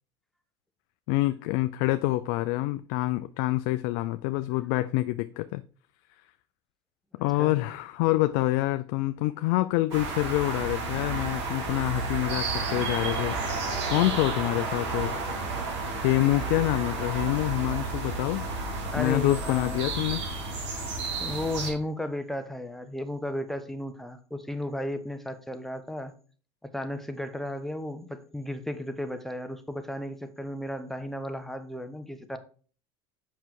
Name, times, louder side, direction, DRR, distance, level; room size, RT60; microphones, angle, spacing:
voice 1, 1.1-5.6 7.2-13.6 13.9-15.1 16.0-18.4 19.0-20.2, left 18 dB, 70° left, 0.5 m, -26 dB
sound 1, 9.9-21.7, right 3 dB, 85° right, 4.2 m, -32 dB
voice 2, 18.9-20.1 21.2-26.1 26.6-32.4, left 1 dB, ahead, 1.1 m, -34 dB
7.4 x 5.6 x 4.6 m
supercardioid pair, 105°, 14 cm